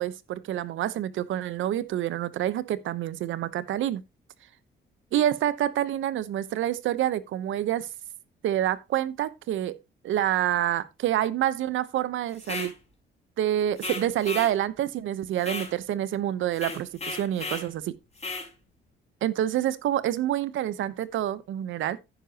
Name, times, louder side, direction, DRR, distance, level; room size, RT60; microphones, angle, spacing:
voice 1, 0.0-4.0 5.1-7.9 8.4-9.8 10.0-12.7 13.4-17.9 19.2-22.0, right 12 dB, 75° right, 1.0 m, -27 dB
sound 1, 12.4-12.7 13.8-14.5 15.4-15.7 16.5-17.7 18.2-18.5, left 3 dB, 35° left, 4.5 m, -35 dB
10.5 x 10.0 x 2.9 m
cardioid pair, 90°, 20 cm